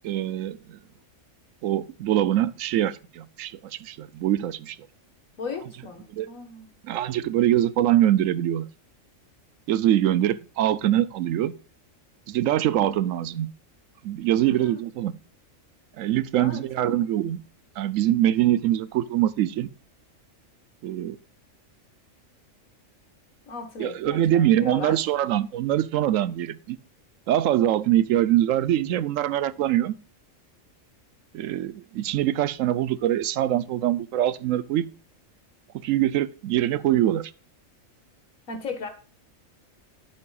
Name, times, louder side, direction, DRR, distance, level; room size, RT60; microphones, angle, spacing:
voice 1, 0.0-0.8 1.6-4.8 6.1-6.3 6.8-8.7 9.7-11.5 12.3-13.5 14.0-15.1 16.0-17.4 17.8-19.7 20.8-21.2 23.8-26.8 27.3-29.9 31.3-34.9 35.8-37.3, right 12 dB, 80° right, 1.0 m, -23 dB
voice 2, 5.4-6.7 12.8-13.3 14.4-14.8 16.4-17.1 23.5-25.1 38.5-38.9, left 5 dB, 85° left, 1.9 m, -37 dB
11.0 x 7.6 x 2.3 m
omnidirectional pair, 1.4 m